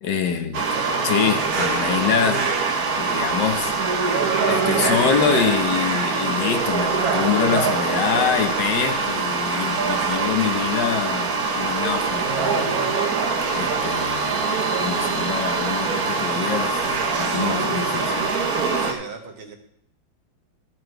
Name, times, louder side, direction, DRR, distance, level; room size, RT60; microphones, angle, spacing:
voice 1, 0.0-2.5 3.0-3.7 4.5-12.8 13.1-18.3, left 7 dB, 60° left, 1.5 m, -25 dB
sound 1, 0.5-18.9, right 4 dB, 50° right, 1.5 m, -23 dB
voice 2, 18.9-19.6, right 5 dB, 90° right, 2.5 m, -37 dB
13.0 x 7.7 x 4.7 m
omnidirectional pair, 2.2 m